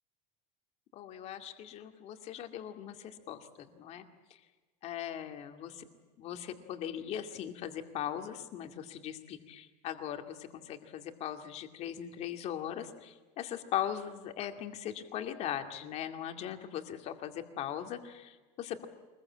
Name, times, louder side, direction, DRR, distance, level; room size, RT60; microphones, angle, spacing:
voice 1, 0.9-4.0 4.8-5.9 6.2-18.8, left 10 dB, 35° left, 6 dB, 2.3 m, -39 dB
24.0 x 21.5 x 8.7 m, 1.3 s
cardioid pair, 165°, 18 cm